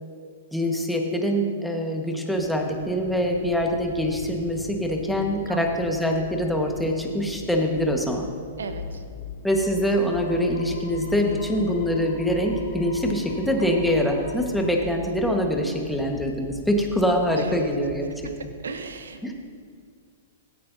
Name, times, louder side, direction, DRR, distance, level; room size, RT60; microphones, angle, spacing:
voice 1, 0.5-8.3 9.4-18.1 19.2-19.3, equal, 5° left, 1 dB, 1.4 m, -24 dB
sound 1, 2.4-18.5, left 4 dB, 45° left, 1.9 m, -44 dB
voice 2, 8.6-9.0 17.4-17.5 18.6-19.3, right 4 dB, 80° right, 9 dB, 0.9 m, -36 dB
sound 2, 8.7-14.7, left 4 dB, 60° left, 1.0 m, -38 dB
16.0 x 9.6 x 2.7 m, 2.1 s
hypercardioid pair, 115°, 0 cm